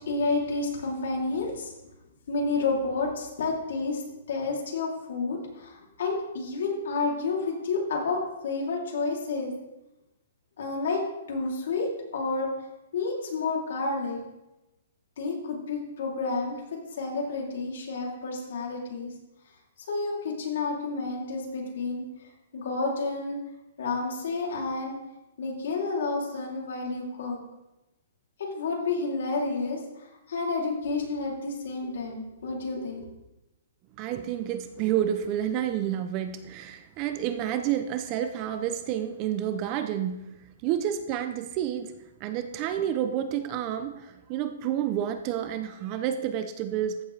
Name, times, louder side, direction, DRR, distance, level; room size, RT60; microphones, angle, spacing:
voice 1, 0.1-1.7 2.3-4.0 4.3-9.6 10.6-12.5 12.9-14.2 15.2-19.1 19.9-22.0 22.5-23.4 23.8-25.0 25.4-27.4 28.4-33.1, left 3 dB, 60° left, -1 dB, 2.9 m, -30 dB
voice 2, 34.0-40.3 40.6-41.9 42.2-47.0, right 10 dB, 25° right, 10 dB, 0.5 m, -29 dB
14.0 x 7.2 x 3.3 m, 0.96 s
hypercardioid pair, 175°, 0 cm